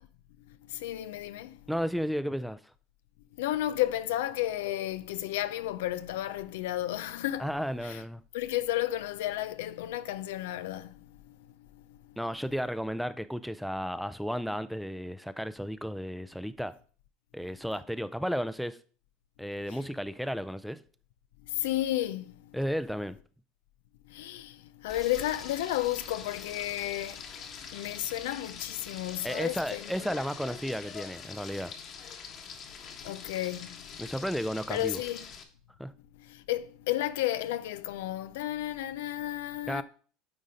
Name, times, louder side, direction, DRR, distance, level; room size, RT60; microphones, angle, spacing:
voice 1, 0.7-1.6 3.4-7.5 7.8-8.0 8.3-11.0 19.7-19.8 21.5-22.3 24.1-27.2 27.7-30.1 33.0-33.8 34.7-35.2 36.3-39.8, left 14 dB, 80° left, 0.5 m, -32 dB
voice 2, 1.7-2.6 7.4-8.2 12.2-16.8 17.3-18.8 19.4-20.8 22.5-23.2 29.2-31.7 34.0-35.0 35.8-35.9 39.7-39.8, equal, ahead, 0.5 m, -33 dB
Frying (food), 24.9-35.4, left 6 dB, 45° left, 1.4 m, -44 dB
9.7 x 3.9 x 5.0 m
supercardioid pair, 105°, 0 cm